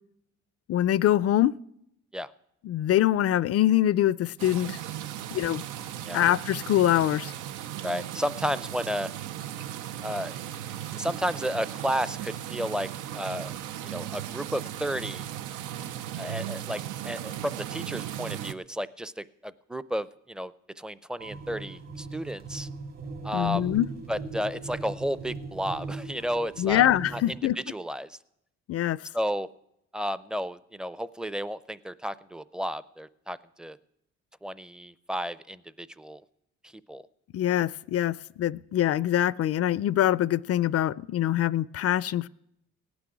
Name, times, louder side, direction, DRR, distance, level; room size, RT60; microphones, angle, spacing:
voice 1, 0.7-1.5 2.6-4.8 5.3-5.6 6.1-7.3 23.3-23.9 26.6-27.6 28.7-29.0 37.3-42.3, left 12 dB, 55° left, 20 dB, 0.4 m, -24 dB
sound 1, 4.4-18.5, right 11 dB, 90° right, 0.6 m, -37 dB
voice 2, 7.8-9.1 10.0-10.6 10.9-13.5 13.8-15.3 16.2-22.7 23.2-23.7 24.1-26.8 27.1-27.4 27.7-28.2 29.1-29.5 29.9-33.8 34.4-36.2 36.9-37.0, equal, 5° right, 17 dB, 0.5 m, -32 dB
sound 2, 21.2-27.4, right 3 dB, 55° right, 2.5 m, -39 dB
17.0 x 6.2 x 9.7 m, 0.80 s
cardioid pair, 90°, 30 cm